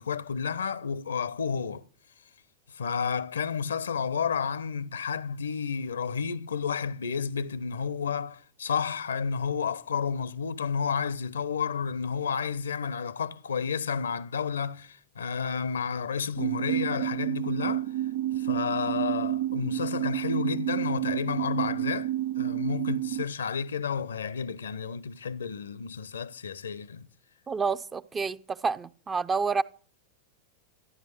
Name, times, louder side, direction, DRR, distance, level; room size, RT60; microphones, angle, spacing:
voice 1, 0.0-1.8 2.7-17.9 18.4-22.1 22.4-27.1, left 6 dB, 70° left, 1.0 m, -31 dB
sound 1, 16.4-23.2, right 13 dB, 60° right, 0.8 m, -30 dB
voice 2, 27.5-29.6, right 5 dB, 20° right, 0.8 m, -29 dB
14.0 x 11.0 x 8.5 m
figure-of-eight pair, 90°, 0 cm